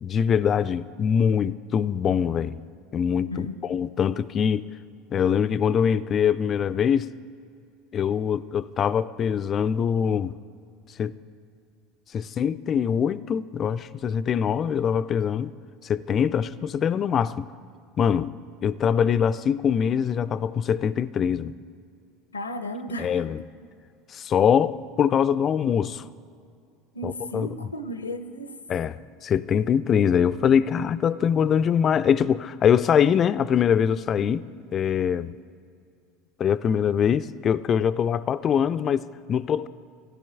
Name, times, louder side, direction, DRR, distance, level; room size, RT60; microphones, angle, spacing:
voice 1, 0.0-2.6 2.9-4.7 5.1-7.1 7.9-10.4 11.0-11.2 12.1-15.5 15.8-17.5 18.0-18.3 18.6-21.5 23.0-23.4 24.1-26.0 27.0-27.5 28.7-35.3 36.4-39.7, left 8 dB, 35° left, 0.3 m, -23 dB
voice 2, 22.3-23.2 26.9-28.6, left 1 dB, 85° left, 0.5 m, -34 dB
16.0 x 9.9 x 3.5 m
figure-of-eight pair, 75°, 0 cm